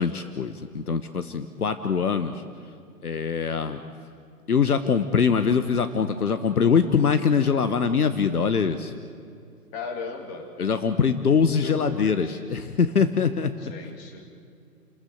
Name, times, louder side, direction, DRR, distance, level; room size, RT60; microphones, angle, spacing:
voice 1, 0.0-2.4 3.0-3.8 4.5-8.9 10.6-13.5, left 6 dB, 70° left, 10 dB, 1.3 m, -23 dB
voice 2, 9.7-10.5 11.6-12.4 13.7-14.3, left 4 dB, 25° left, 4 dB, 3.0 m, -37 dB
30.0 x 14.0 x 8.1 m, 2.4 s
figure-of-eight pair, 130°, 47 cm